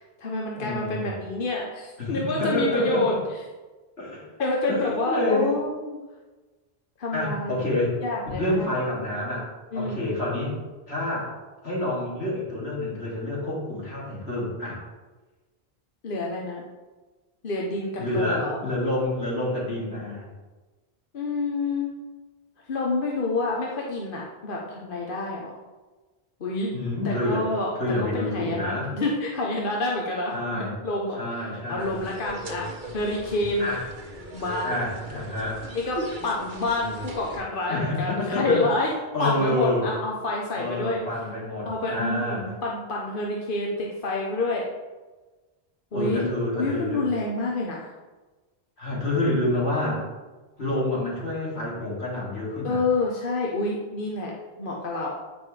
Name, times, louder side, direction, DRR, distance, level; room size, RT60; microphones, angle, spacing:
voice 1, 0.0-3.1 4.4-6.0 7.0-7.6 8.0-8.7 9.7-10.1 16.0-16.6 17.4-18.6 21.1-21.9 22.7-25.6 26.4-26.7 27.0-27.7 28.0-31.4 31.7-33.7 34.3-34.7 35.7-38.9 39.2-41.0 41.6-44.7 45.9-47.9 52.6-54.3 54.6-55.1, left 2 dB, 55° left, -2 dB, 1.1 m, -28 dB
voice 2, 0.5-1.1 2.0-3.2 4.0-4.3 4.7-5.5 7.1-8.0 8.4-9.5 9.7-10.6 10.9-11.3 11.6-14.8 18.0-20.3 26.7-28.9 30.3-30.7 31.1-32.0 33.6-33.8 34.6-35.6 37.7-38.7 39.1-39.9 40.6-42.5 45.9-47.0 48.8-50.1 50.6-52.8, left 1 dB, 80° left, -6 dB, 2.9 m, -28 dB
sound 1, 31.8-37.4, right 1 dB, 50° right, 1.2 m, -38 dB
9.5 x 5.2 x 3.3 m, 1.2 s
omnidirectional pair, 1.1 m